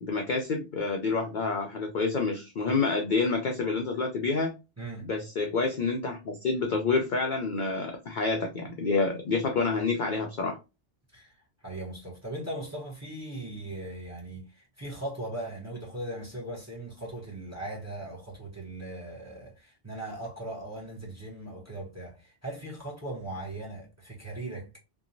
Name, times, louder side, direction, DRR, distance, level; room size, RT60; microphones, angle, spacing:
voice 1, 0.0-4.5 5.0-10.6, left 4 dB, 60° left, 0.5 m, -28 dB
voice 2, 4.8-5.1 11.1-24.8, right 1 dB, 15° right, 0.7 m, -39 dB
2.9 x 2.2 x 2.5 m
omnidirectional pair, 1.2 m